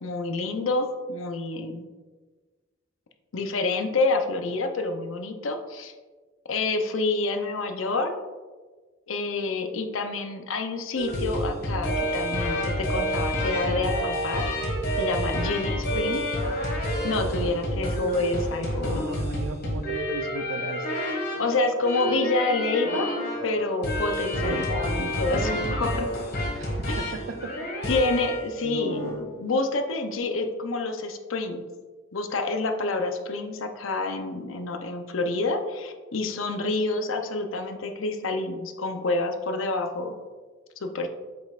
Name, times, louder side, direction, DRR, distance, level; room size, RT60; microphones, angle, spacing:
voice 1, 0.0-1.9 3.3-5.9 6.5-8.1 9.1-16.2 17.0-19.1 21.4-23.1 23.4-26.2 26.9-27.3 27.9-31.7 32.1-40.1 40.8-41.1, left 3 dB, 75° left, 5 dB, 0.7 m, -28 dB
sound 1, 11.0-28.5 28.9-29.2, equal, 55° left, 1.9 m, -29 dB
voice 2, 18.9-20.9 24.4-24.7 26.5-26.7 27.0-27.7 28.6-29.3, right 4 dB, 75° right, 8 dB, 0.5 m, -36 dB
7.8 x 5.3 x 2.4 m, 1.4 s
head